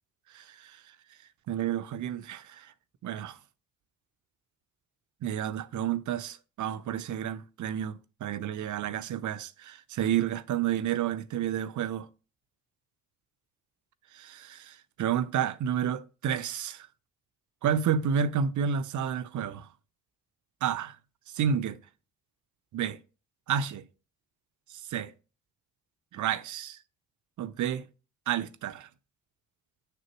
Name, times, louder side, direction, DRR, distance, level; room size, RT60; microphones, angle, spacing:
voice 1, 0.3-0.7 1.5-2.7 3.0-3.4 5.2-12.1 14.1-16.9 17.6-19.7 20.6-21.0 21.3-21.8 22.7-23.0 23.5-23.8 24.9-25.1 26.1-26.8 27.4-27.8 28.3-28.9, right 8 dB, 60° right, 0.7 m, -30 dB
6.8 x 6.7 x 3.0 m
supercardioid pair, 55°, 34 cm